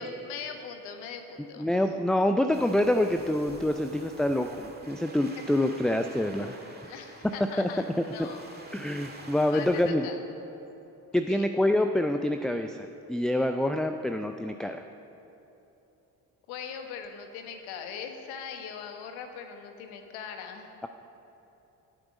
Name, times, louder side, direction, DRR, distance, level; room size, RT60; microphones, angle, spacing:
voice 1, 0.0-1.7 5.7-5.8 6.8-8.4 9.5-10.2 11.3-11.4 16.5-20.7, left 6 dB, 70° left, 5 dB, 1.4 m, -40 dB
voice 2, 1.6-6.5 7.6-7.7 8.2-8.3 8.7-10.1 11.1-12.8 13.1-14.8, left 1 dB, ahead, 7 dB, 0.3 m, -26 dB
Waves surf, 2.5-9.9, right 2 dB, 20° right, 1.9 m, -48 dB
16.5 x 9.6 x 5.1 m, 3.0 s
figure-of-eight pair, 45°, 49 cm